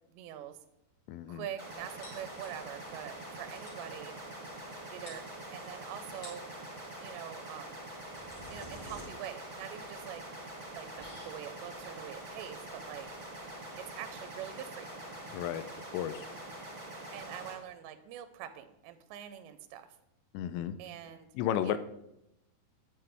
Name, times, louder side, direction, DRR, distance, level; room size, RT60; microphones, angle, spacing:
voice 1, 0.1-0.6 1.3-4.2 4.9-5.2 5.5-6.4 7.0-7.8 8.5-10.3 10.7-13.1 13.8-15.0 17.1-20.0 20.8-21.3 21.6-21.8, right 11 dB, 85° right, 9 dB, 2.6 m, -44 dB
voice 2, 1.1-1.4 15.3-15.6 15.9-16.3 20.3-20.7 21.4-21.8, left 10 dB, 85° left, 12 dB, 2.6 m, -33 dB
sound 1, 1.6-17.5, right 1 dB, 20° right, 1.4 m, -45 dB
sound 2, 2.0-2.9 3.2-3.3 3.5-3.9 4.7-4.8 5.1-5.7 6.1-6.6 7.7-14.4, left 1 dB, 35° left, 3.6 m, -53 dB
9.4 x 9.4 x 3.4 m, 0.84 s
omnidirectional pair, 5.4 m